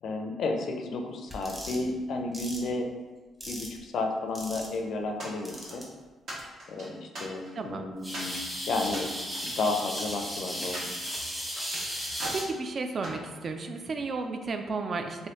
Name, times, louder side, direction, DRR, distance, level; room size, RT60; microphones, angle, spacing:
voice 1, 0.0-2.9 3.5-5.8 6.7-8.4 8.7-9.1 9.4-10.8, left 3 dB, 65° left, 3 dB, 0.4 m, -32 dB
sound 1, 1.3-1.8 2.3-2.6 3.4-3.8 4.3-4.8 5.4-5.8 6.4-6.5 8.0-12.4, equal, 10° right, 0.9 m, -35 dB
sound 2, 5.2-5.8 6.3-7.7 8.1-8.4 8.8-10.2 10.7-11.7 12.1-12.5 13.0-14.1, right 1 dB, 65° right, 1.2 m, -41 dB
voice 2, 7.6-7.9 12.3-15.3, right 3 dB, 45° right, 6 dB, 0.3 m, -33 dB
3.2 x 2.7 x 2.9 m, 1.3 s
cardioid pair, 90°, 0 cm